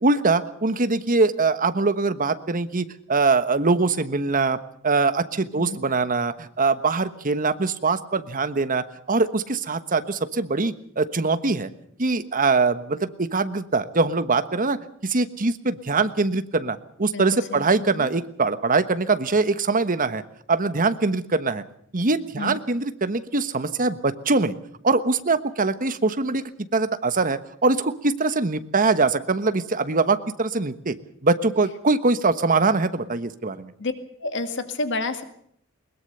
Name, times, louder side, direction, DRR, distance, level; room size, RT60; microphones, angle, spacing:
voice 1, 0.0-4.6 4.8-11.7 12.0-14.8 15.0-20.2 20.5-21.6 21.9-24.5 24.8-26.4 26.7-30.9 31.2-33.7, right 3 dB, 40° right, 11 dB, 1.3 m, -23 dB
voice 2, 17.5-18.1 22.4-22.6 33.8-33.9 34.2-35.2, left 3 dB, 60° left, 8 dB, 2.0 m, -29 dB
21.0 x 21.0 x 6.8 m, 0.65 s
head